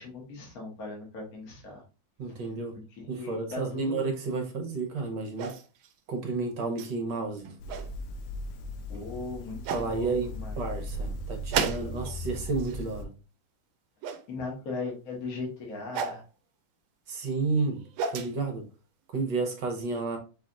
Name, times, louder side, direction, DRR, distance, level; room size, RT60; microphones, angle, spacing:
voice 1, 0.0-1.8 2.3-2.4 3.1-4.1 8.9-10.1 10.4-10.6 14.3-16.2, left 3 dB, 50° left, -1 dB, 1.7 m, -38 dB
voice 2, 2.2-2.8 3.1-5.5 6.1-7.6 9.7-13.1 17.1-17.8 18.1-18.7 19.1-20.2, right 4 dB, 65° right, 3 dB, 1.5 m, -31 dB
sound 1, 5.4-5.9 6.8-6.9 7.4-7.9 8.9-9.0 9.6-9.9 11.5-12.2 12.5-12.9 14.0-14.2 15.9-16.2 17.6-18.3, right 6 dB, 80° right, 1.3 m, -32 dB
sound 2, 7.6-13.1, left 1 dB, 75° left, 1.2 m, -37 dB
5.7 x 3.3 x 2.5 m, 0.34 s
omnidirectional pair, 2.2 m